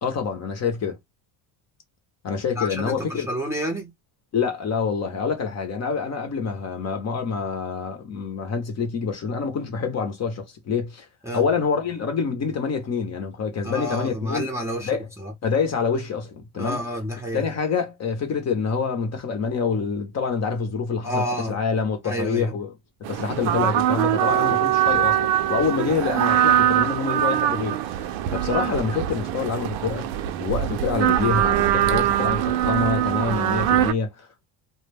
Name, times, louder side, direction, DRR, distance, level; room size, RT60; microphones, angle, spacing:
voice 1, 0.0-1.0 2.2-3.3 4.3-11.1 11.3-14.5 14.8-15.1 15.4-16.8 17.3-22.8 23.1-30.1 30.4-34.5, left 5 dB, 35° left, 0.7 m, -26 dB
voice 2, 2.5-3.9 11.2-11.4 13.6-14.9 15.2-15.3 16.6-17.4 21.0-21.6 22.0-22.5 24.2-24.6, equal, 5° right, 0.6 m, -29 dB
sound 1, 23.0-33.9, right 12 dB, 85° right, 0.6 m, -22 dB
2.2 x 2.2 x 3.2 m
cardioid pair, 140°, 46 cm